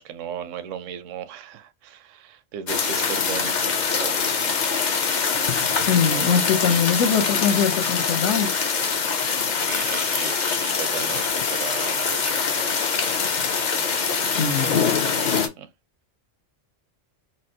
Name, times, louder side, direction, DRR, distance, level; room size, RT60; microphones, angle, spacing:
voice 1, 0.0-4.5 6.0-6.9 9.5-15.7, right 9 dB, 80° right, 0.9 m, -37 dB
sound 1, 2.7-15.5, left 5 dB, 50° left, 0.6 m, -24 dB
voice 2, 5.7-8.6 14.4-14.7, left 7 dB, 75° left, 1.0 m, -22 dB
4.2 x 2.0 x 2.6 m
omnidirectional pair, 1.3 m